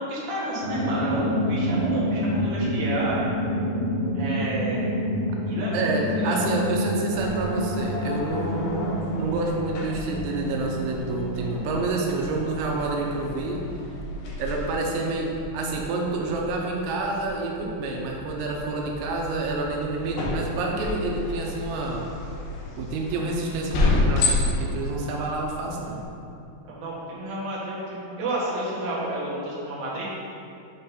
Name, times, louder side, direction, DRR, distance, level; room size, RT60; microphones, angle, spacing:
voice 1, 0.0-3.3 4.1-4.8 5.5-5.8 6.2-6.5 14.3-14.4 26.7-30.1, right 1 dB, 65° right, -8 dB, 1.9 m, -31 dB
sound 1, 0.6-13.2, equal, 65° left, 1.9 m, -28 dB
voice 2, 5.7-8.8 9.2-13.6 14.4-22.0 22.8-26.0, right 3 dB, 80° right, 0 dB, 2.8 m, -28 dB
sound 2, 7.1-26.0, left 3 dB, 80° left, 2.1 m, -32 dB
8.2 x 4.2 x 3.9 m, 2.6 s
omnidirectional pair, 5.5 m